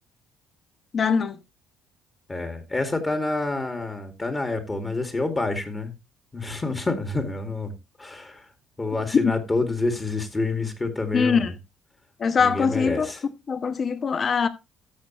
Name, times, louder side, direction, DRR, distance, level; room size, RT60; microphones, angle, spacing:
voice 1, 0.9-1.4 9.2-9.3 11.1-11.5 12.2-13.1 13.5-14.5, left 5 dB, 35° left, 1.1 m, -22 dB
voice 2, 2.3-5.9 6.3-7.7 8.0-8.4 8.8-11.5 12.4-13.2, left 3 dB, 20° left, 2.1 m, -28 dB
14.0 x 6.4 x 3.0 m
cardioid pair, 110°, 0 cm